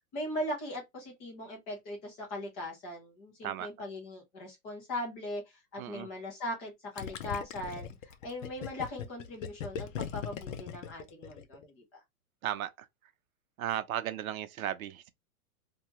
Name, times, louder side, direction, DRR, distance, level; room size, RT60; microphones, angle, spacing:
voice 1, 0.1-12.0, left 1 dB, 10° left, 0.4 m, -39 dB
voice 2, 5.8-6.1 12.4-12.9 13.6-15.1, right 11 dB, 70° right, 0.6 m, -35 dB
Gurgling, 7.0-11.7, left 7 dB, 60° left, 0.6 m, -39 dB
2.7 x 2.3 x 2.9 m
hypercardioid pair, 150°, 44 cm